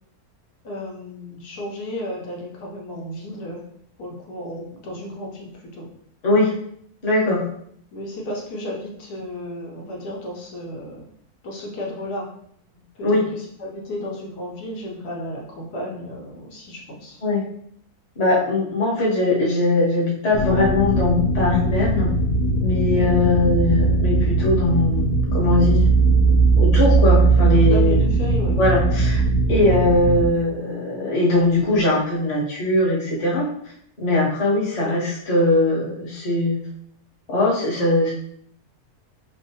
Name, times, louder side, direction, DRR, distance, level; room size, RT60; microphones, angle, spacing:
voice 1, 0.6-3.6 4.0-5.9 7.9-11.1 11.4-12.3 13.0-17.2 22.9-23.1 27.7-28.6 34.8-35.0, left 1 dB, 85° left, -1 dB, 1.3 m, -33 dB
voice 2, 7.0-7.5 13.0-13.2 17.2-17.4 18.2-22.2 22.6-25.8 26.6-28.0 28.5-29.2 29.5-33.5 34.0-36.6 37.3-38.1, left 2 dB, 30° left, -5 dB, 0.8 m, -20 dB
sound 1, 20.3-30.3, right 3 dB, 60° left, 0.4 m, -19 dB
4.5 x 2.2 x 2.7 m, 0.67 s
omnidirectional pair, 1.6 m